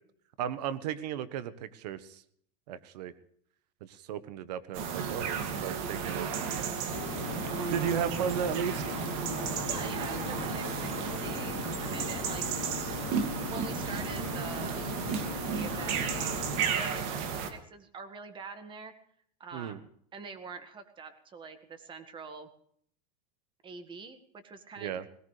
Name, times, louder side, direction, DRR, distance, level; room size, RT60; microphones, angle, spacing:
voice 1, 0.4-2.2 2.7-3.1 3.8-6.3 7.7-9.0 19.5-19.8 24.8-25.1, right 9 dB, 75° right, 14 dB, 1.3 m, -35 dB
sound 1, 4.7-17.5, right 6 dB, 60° right, 2.4 m, -33 dB
sound 2, 6.9-16.6, left 15 dB, 65° left, 0.9 m, -41 dB
voice 2, 9.7-12.5 13.5-14.9 15.5-18.9 19.4-22.5 23.6-25.1, right 4 dB, 25° right, 9 dB, 1.8 m, -45 dB
20.0 x 18.5 x 3.4 m, 0.62 s
supercardioid pair, 135°, 21 cm